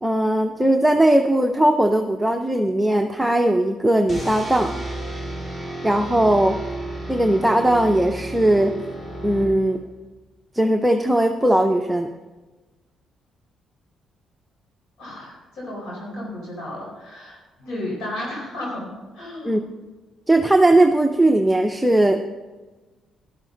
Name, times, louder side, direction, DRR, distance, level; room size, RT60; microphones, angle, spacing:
voice 1, 0.0-4.8 5.8-6.6 7.1-8.8 9.2-9.8 10.5-12.1 19.4-19.6 20.3-22.3, right 1 dB, 5° right, 3 dB, 0.7 m, -18 dB
sound 1, 4.1-10.0, right 1 dB, 30° left, 4.3 m, -33 dB
voice 2, 15.0-19.6, left 1 dB, 80° left, -3 dB, 4.7 m, -33 dB
12.5 x 12.0 x 3.9 m, 1.3 s
cardioid pair, 90°, 0 cm